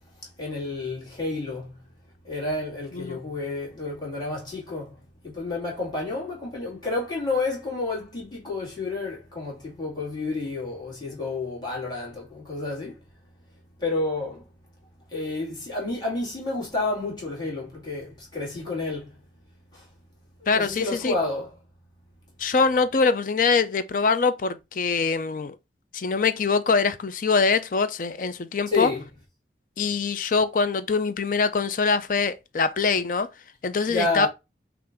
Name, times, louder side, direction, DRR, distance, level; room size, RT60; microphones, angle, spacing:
voice 1, 0.4-1.7 2.3-4.9 5.2-12.9 13.8-14.4 15.1-19.1 20.5-21.5 28.7-29.0 33.9-34.3, left 3 dB, 25° left, 2.3 m, -30 dB
voice 2, 20.5-21.2 22.4-25.6 25.9-28.9 29.8-33.3 33.6-34.3, left 4 dB, 45° left, 0.4 m, -23 dB
5.8 x 2.5 x 3.6 m
head